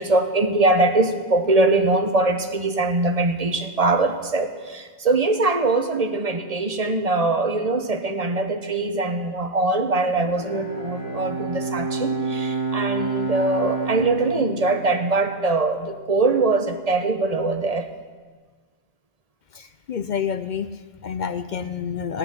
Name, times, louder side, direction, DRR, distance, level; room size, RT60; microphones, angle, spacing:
voice 1, 0.0-17.9, right 2 dB, 40° right, 7 dB, 1.1 m, -22 dB
Bowed string instrument, 10.2-15.7, right 3 dB, 20° left, 2.4 m, -29 dB
voice 2, 19.5-22.2, left 7 dB, 55° left, 11 dB, 0.6 m, -29 dB
16.5 x 6.7 x 9.7 m, 1.5 s
omnidirectional pair, 1.1 m